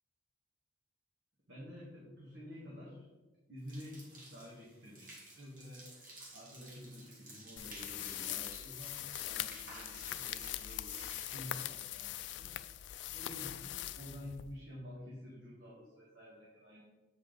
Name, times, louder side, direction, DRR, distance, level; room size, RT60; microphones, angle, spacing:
voice 1, 1.5-3.1 3.5-5.9 6.3-12.5 13.1-16.8, left 1 dB, 70° right, -6 dB, 1.8 m, -50 dB
sound 1, 3.6-13.9, right 1 dB, 45° right, 2.1 m, -55 dB
sound 2, 7.6-14.7, left 13 dB, 75° left, 0.3 m, -42 dB
8.3 x 5.2 x 4.0 m, 1.2 s
head